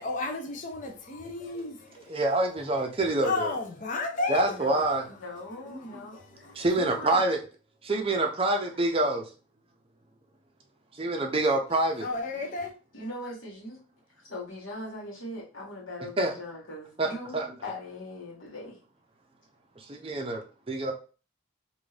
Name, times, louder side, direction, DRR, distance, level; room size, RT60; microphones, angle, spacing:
voice 1, 0.0-2.2 3.2-4.6 5.8-6.7 12.0-12.7, left 3 dB, 40° left, 0.5 m, -33 dB
voice 2, 2.1-3.5 4.3-5.0 5.7-6.0 6.5-7.4 7.8-9.2 11.0-12.1 16.2-16.3 17.0-17.5 19.9-20.9, right 2 dB, 25° right, 0.5 m, -26 dB
voice 3, 4.5-7.2 12.9-13.8 14.2-18.8 20.1-20.2, left 1 dB, 65° left, 1.4 m, -40 dB
2.6 x 2.5 x 3.2 m
head